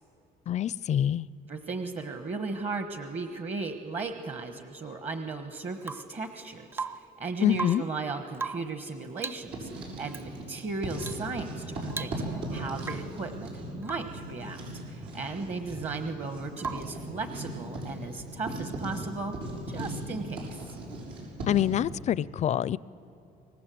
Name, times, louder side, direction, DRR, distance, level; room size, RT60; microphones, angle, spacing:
voice 1, 0.5-1.3 7.4-7.8 21.5-22.8, left 11 dB, 45° left, 21 dB, 0.4 m, -26 dB
voice 2, 1.5-14.6 14.9-19.3 19.7-20.8, right 3 dB, 40° right, 7 dB, 1.3 m, -36 dB
Rain / Water tap faucet / Drip, 5.8-6.2 6.7-7.2 7.5-8.0 8.3-8.8 9.2-9.5 10.1-10.3 11.0-11.3 11.6-11.7 11.9-12.5 12.8-13.2 13.8-14.2 16.6-17.0 18.9-19.0, right 4 dB, 15° right, 0.6 m, -38 dB
Writing, 9.4-10.5 10.8-21.8, right 1 dB, 90° right, 7.1 m, -38 dB
25.0 x 19.5 x 7.7 m, 2.9 s
cardioid pair, 110°, 17 cm